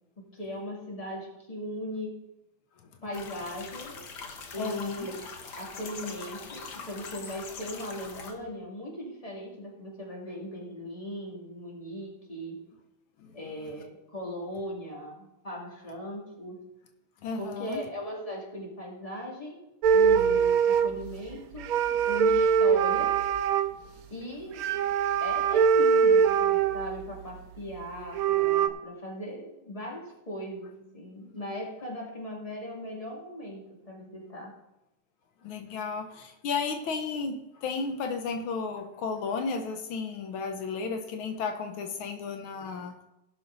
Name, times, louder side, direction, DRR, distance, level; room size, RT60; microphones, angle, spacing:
voice 1, 0.2-2.2 3.0-4.0 4.5-5.2 5.6-12.6 13.3-16.6 17.4-19.6 19.9-21.7 22.1-23.1 24.1-24.7 25.2-34.5, equal, 15° left, -3 dB, 2.5 m, -38 dB
sound 1, 3.1-8.3, left 4 dB, 60° left, 1.7 m, -42 dB
voice 2, 4.6-5.1 13.2-13.4 17.2-17.8 35.4-43.0, left 5 dB, 80° left, 6 dB, 1.7 m, -33 dB
sound 2, 19.8-21.1 21.6-23.7 24.6-27.0 27.7-27.8 28.0-28.7, right 6 dB, 70° right, 0.8 m, -23 dB
17.5 x 6.1 x 4.0 m, 0.94 s
omnidirectional pair, 2.2 m